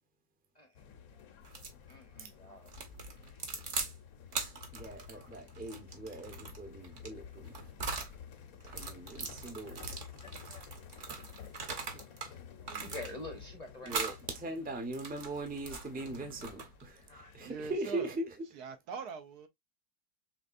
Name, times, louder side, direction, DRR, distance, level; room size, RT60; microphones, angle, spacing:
sound 1, 0.7-17.8, left 7 dB, 65° left, 1.1 m, -52 dB
sound 2, 1.4-1.8 2.7-3.9 4.3-8.1 8.6-12.3 12.6-13.4 13.9-14.2 14.7-16.9, right 4 dB, 50° right, 1.2 m, -41 dB
voice 1, 1.9-2.7 5.1-5.3 9.7-10.7 12.8-14.2 17.0-17.3, left 2 dB, 30° left, 0.8 m, -48 dB
voice 2, 4.7-7.6 8.7-10.0 11.9-12.1 13.8-18.3, right 2 dB, 10° right, 0.6 m, -40 dB
voice 3, 12.6-13.1 17.4-18.1 18.5-19.5, right 5 dB, 70° right, 1.2 m, -43 dB
5.1 x 3.2 x 2.4 m
omnidirectional pair, 1.8 m